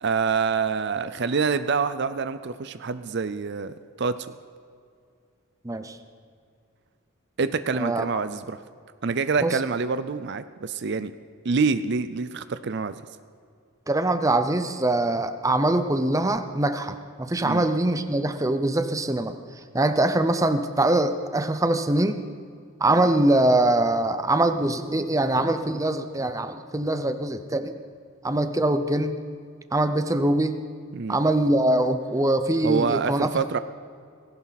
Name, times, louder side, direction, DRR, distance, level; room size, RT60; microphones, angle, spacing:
voice 1, 0.0-4.3 7.4-8.6 9.0-11.1 11.4-13.0 17.4-17.7 30.9-31.2 32.6-33.6, right 5 dB, 55° right, 12 dB, 0.5 m, -26 dB
voice 2, 5.6-6.0 7.7-8.1 9.4-9.5 13.9-19.3 19.7-22.2 22.8-27.8 28.2-29.2 29.7-30.6 31.1-33.3, right 1 dB, 15° right, 9 dB, 0.7 m, -23 dB
19.0 x 17.0 x 4.1 m, 2.2 s
head